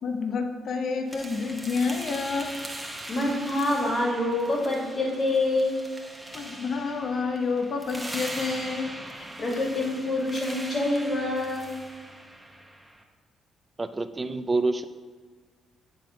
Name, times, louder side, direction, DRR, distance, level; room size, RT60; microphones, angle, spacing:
voice 1, 0.0-2.5 6.3-8.9 9.4-9.5, left 4 dB, 60° left, 5 dB, 0.9 m, -29 dB
sound 1, 1.1-13.0, right 1 dB, 5° right, 1.0 m, -41 dB
voice 2, 3.1-5.8 9.4-11.7, left 2 dB, 40° left, -1 dB, 2.3 m, -26 dB
voice 3, 13.8-14.9, right 3 dB, 25° right, 10 dB, 0.5 m, -27 dB
9.0 x 3.9 x 5.0 m, 1.5 s
cardioid pair, 90°, 0 cm